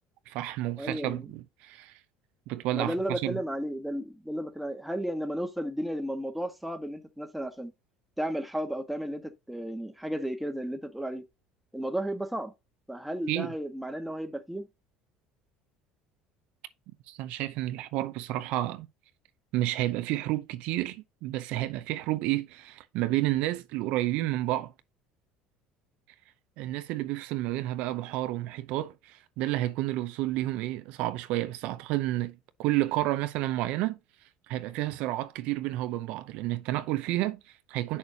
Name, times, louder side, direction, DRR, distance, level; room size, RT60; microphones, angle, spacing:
voice 1, 0.3-2.0 2.5-3.4 13.3-13.5 17.1-18.9 19.5-24.7 26.6-34.0 34.5-38.0, right 16 dB, 70° right, 0.6 m, -30 dB
voice 2, 0.8-1.2 2.7-7.7 8.2-11.2 11.7-12.5 12.9-14.7, equal, 5° right, 1.3 m, -33 dB
7.0 x 6.4 x 2.8 m
supercardioid pair, 100°, 2 cm